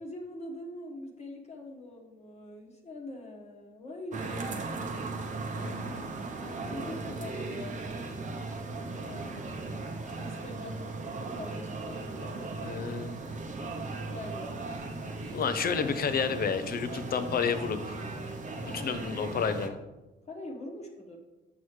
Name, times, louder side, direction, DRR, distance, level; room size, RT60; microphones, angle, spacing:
voice 1, 0.0-4.5 6.4-7.7 8.7-11.0 11.3-13.1 14.1-14.5 15.2-15.7 18.6-19.3 20.2-21.2, left 1 dB, 35° left, 0 dB, 1.3 m, -44 dB
sound 1, 4.1-19.7, right 3 dB, 40° right, 0.8 m, -37 dB
voice 2, 5.5-6.1 12.6-13.2 15.3-18.0 18.6-19.7, left 6 dB, 50° left, 10 dB, 0.7 m, -31 dB
7.3 x 6.0 x 3.2 m, 1.1 s
cardioid pair, 90°, 20 cm